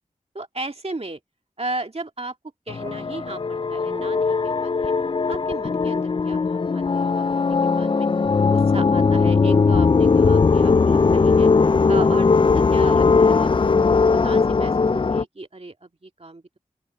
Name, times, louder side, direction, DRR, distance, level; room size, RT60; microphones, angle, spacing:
voice 1, 0.3-1.2 1.6-2.4 2.7-4.9 5.3-8.1 8.5-11.5 11.9-13.8 14.2-16.6, right 2 dB, 45° right, 2.1 m, -35 dB
sound 1, 2.7-15.2, left 4 dB, 35° left, 0.4 m, -19 dB
open air
cardioid pair, 40°, 15 cm